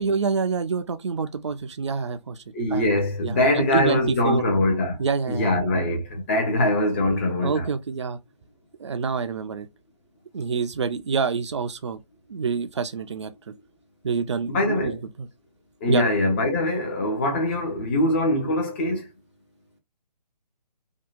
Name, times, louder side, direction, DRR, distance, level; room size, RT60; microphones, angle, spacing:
voice 1, 0.0-2.4 2.7-2.9 3.2-4.5 5.0-5.8 7.4-8.2 8.8-9.7 10.3-12.0 12.3-13.5 14.0-15.3 15.9-16.0, right 5 dB, 45° right, 0.4 m, -27 dB
voice 2, 2.5-5.0 5.3-7.7 14.5-15.0 15.8-19.0, left 1 dB, 20° left, 0.6 m, -23 dB
2.7 x 2.1 x 2.3 m
figure-of-eight pair, 140°, 21 cm